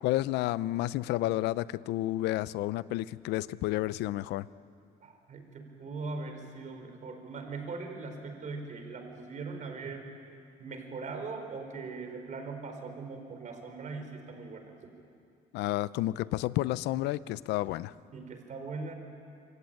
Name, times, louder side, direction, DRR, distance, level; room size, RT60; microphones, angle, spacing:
voice 1, 0.0-4.5 15.5-17.9, left 16 dB, 85° left, 17 dB, 0.7 m, -31 dB
voice 2, 5.0-10.1 10.6-14.7 18.1-18.9, right 4 dB, 45° right, 5 dB, 4.7 m, -40 dB
27.0 x 24.0 x 9.1 m, 2.4 s
cardioid pair, 110°, 17 cm